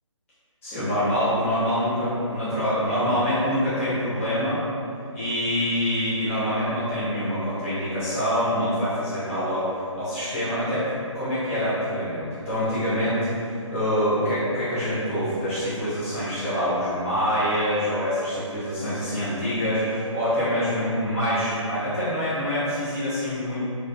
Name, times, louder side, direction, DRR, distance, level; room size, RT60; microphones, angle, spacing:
voice 1, 0.6-4.6 5.1-23.7, equal, 25° left, -13 dB, 0.8 m, -25 dB
2.6 x 2.2 x 2.4 m, 2.6 s
figure-of-eight pair, 160°, 17 cm